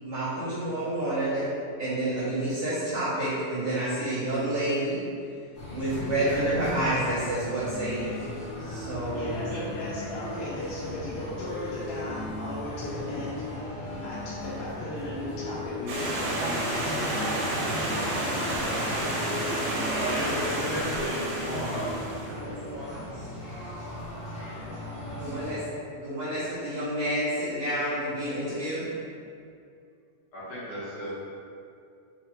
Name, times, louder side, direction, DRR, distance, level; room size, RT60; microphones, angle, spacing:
voice 1, 0.0-1.5 1.8-5.0 5.7-8.2 8.6-9.4 18.6-20.1 22.3-23.1 25.1-25.6 26.0-28.9, right 1 dB, 90° right, -14 dB, 1.3 m, -30 dB
sound 1, 5.5-25.5, left 1 dB, 50° left, 1.3 m, -37 dB
voice 2, 9.1-18.2 18.7-19.0, left 1 dB, 85° left, -8 dB, 2.5 m, -37 dB
Stream, 15.9-22.3, right 1 dB, 70° right, 1.9 m, -30 dB
voice 3, 20.0-21.9 30.3-31.1, equal, 65° left, -11 dB, 1.8 m, -34 dB
6.0 x 2.4 x 3.1 m, 2.4 s
omnidirectional pair, 4.1 m